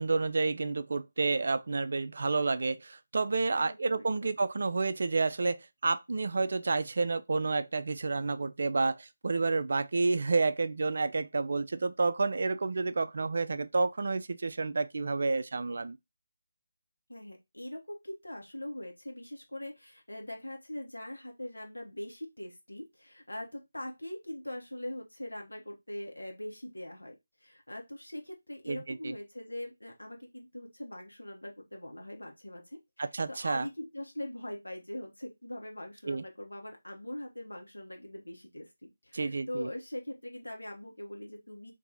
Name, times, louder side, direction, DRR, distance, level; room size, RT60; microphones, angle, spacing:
voice 1, 0.0-16.0 28.7-29.2 33.0-33.7 36.1-36.2 39.1-39.7, right 3 dB, 55° right, 0.3 m, -30 dB
voice 2, 3.6-4.0 17.1-27.2 27.4-41.7, left 1 dB, 80° left, 1.1 m, -42 dB
2.8 x 2.6 x 3.7 m
figure-of-eight pair, 155°, 0 cm